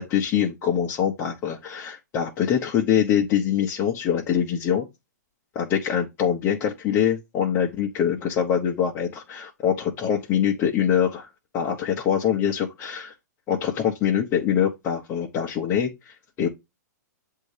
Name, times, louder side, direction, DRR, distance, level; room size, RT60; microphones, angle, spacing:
voice 1, 0.0-4.9 5.5-11.3 11.5-13.1 13.5-16.5, left 9 dB, 25° left, 1.0 m, -24 dB
7.4 x 2.8 x 4.9 m
hypercardioid pair, 135°, 10 cm